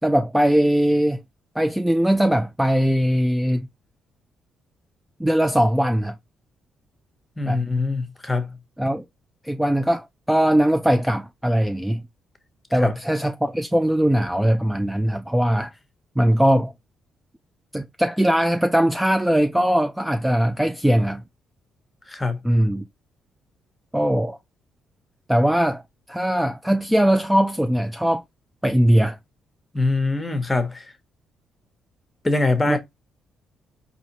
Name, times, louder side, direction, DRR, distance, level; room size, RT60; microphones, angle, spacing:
voice 1, 0.0-1.2 1.6-3.7 5.2-6.2 7.5-7.6 8.8-9.0 9.4-12.0 12.7-15.7 16.2-16.7 17.7-21.2 22.4-22.9 23.9-24.4 25.3-25.8 26.1-28.2 28.6-29.2 32.7-32.8, equal, 5° right, 0.3 m, -20 dB
voice 2, 7.4-8.6 12.7-12.9 22.1-22.4 29.7-30.9 32.2-32.8, left 3 dB, 15° left, 0.9 m, -23 dB
4.1 x 2.8 x 2.8 m
cardioid pair, 90°, 0 cm